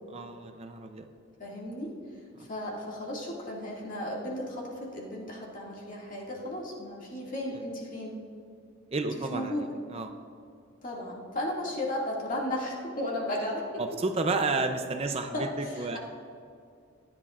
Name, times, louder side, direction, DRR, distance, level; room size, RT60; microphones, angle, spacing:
voice 1, 0.1-1.1 8.9-9.5 9.9-10.1 13.8-16.0, right 3 dB, 30° right, 6 dB, 0.4 m, -31 dB
voice 2, 1.4-1.9 2.4-8.1 9.2-9.7 10.8-13.6 15.3-16.0, left 1 dB, 40° left, -3 dB, 2.0 m, -35 dB
15.5 x 11.0 x 2.4 m, 2.4 s
head